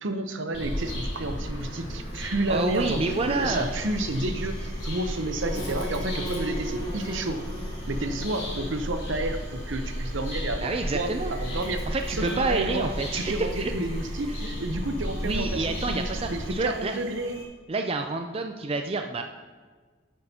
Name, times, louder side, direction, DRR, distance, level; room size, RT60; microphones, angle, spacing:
voice 1, 0.0-7.4 7.9-17.4, right 1 dB, 65° right, 7 dB, 0.8 m, -31 dB
Bird vocalization bird call bird song, 0.5-16.5, equal, 35° left, 2.9 m, -33 dB
voice 2, 2.5-3.7 10.6-11.3 11.9-13.7 14.3-14.4 15.2-17.0 17.7-19.2, right 3 dB, 30° right, 5 dB, 0.4 m, -28 dB
sound 1, 2.5-17.5, equal, 50° right, 3.2 m, -48 dB
12.0 x 8.8 x 2.8 m, 1.4 s
head